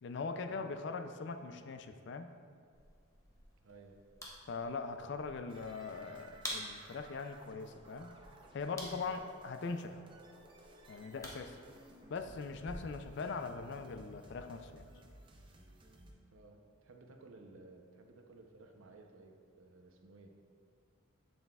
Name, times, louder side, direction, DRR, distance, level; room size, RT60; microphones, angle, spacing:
voice 1, 0.0-2.3 4.5-8.2 8.5-10.0 10.9-11.6 12.1-14.8, left 4 dB, 55° left, 8 dB, 0.4 m, -41 dB
sound 1, 2.7-12.7, left 1 dB, 15° left, 0.8 m, -51 dB
voice 2, 3.6-4.0 9.0-9.2 12.2-12.4 15.9-20.3, right 3 dB, 75° right, 4 dB, 0.7 m, -57 dB
sound 2, 5.5-16.1, right 1 dB, 25° right, 0.6 m, -58 dB
7.9 x 7.4 x 2.3 m, 2.2 s
head